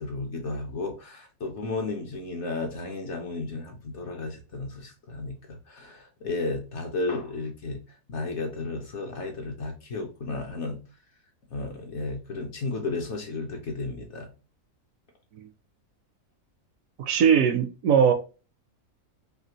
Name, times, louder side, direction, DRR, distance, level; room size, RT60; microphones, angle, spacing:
voice 1, 0.0-7.8 8.1-10.8 11.5-14.3, left 3 dB, 55° left, 0.9 m, -33 dB
voice 2, 17.0-18.1, right 7 dB, 70° right, 0.9 m, -20 dB
3.3 x 2.8 x 2.8 m
omnidirectional pair, 1.6 m